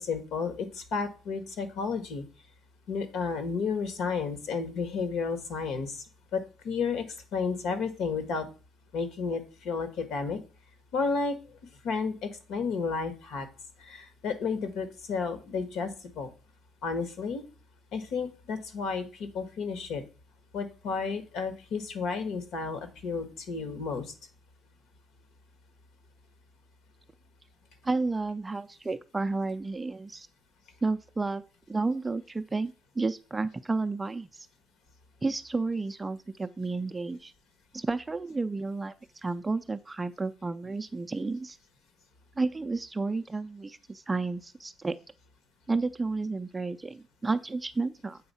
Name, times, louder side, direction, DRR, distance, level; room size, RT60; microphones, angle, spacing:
voice 1, 0.0-2.2 2.9-6.0 6.3-7.0 7.3-8.5 8.9-10.4 10.9-11.4 11.8-13.5 13.8-16.3 16.8-17.4 17.9-20.0 20.5-24.1, left 5 dB, 70° left, 9 dB, 1.4 m, -32 dB
voice 2, 27.8-30.3 30.8-31.4 31.7-34.5 35.2-37.3 37.7-38.9 39.2-41.6 42.4-44.9 45.7-48.2, right 3 dB, 15° right, 10 dB, 0.4 m, -31 dB
7.8 x 3.6 x 5.5 m, 0.35 s
cardioid pair, 150°, 0 cm